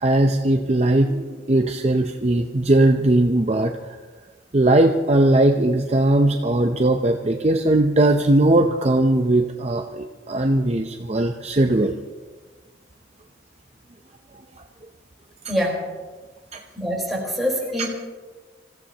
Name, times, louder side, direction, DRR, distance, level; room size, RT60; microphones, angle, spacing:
voice 1, 0.0-3.9 4.5-12.0 16.5-16.6 17.8-17.9, right 1 dB, 35° right, 4 dB, 0.6 m, -19 dB
voice 2, 15.5-15.9 16.7-17.9, equal, ahead, -3 dB, 4.4 m, -24 dB
25.5 x 15.5 x 2.9 m, 1.4 s
head